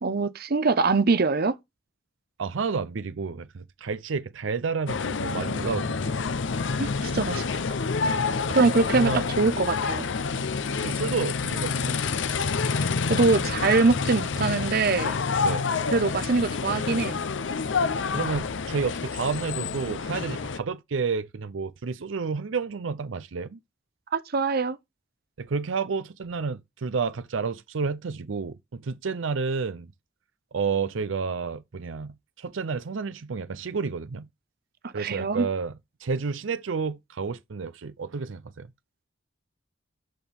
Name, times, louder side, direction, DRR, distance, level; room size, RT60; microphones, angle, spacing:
voice 1, 0.0-1.6 6.8-7.4 8.5-9.1 9.4-10.1 12.8-15.1 15.9-17.2 24.1-24.8 34.9-35.5, right 4 dB, 55° right, 0.8 m, -23 dB
voice 2, 2.4-6.0 8.9-9.3 10.7-12.0 15.4-15.6 18.1-23.6 25.4-29.9 30.5-34.3 34.9-35.7 36.0-38.7, right 5 dB, 85° right, 0.6 m, -30 dB
sound 1, 4.9-20.6, left 4 dB, 70° left, 0.6 m, -28 dB
12.5 x 4.3 x 3.5 m
head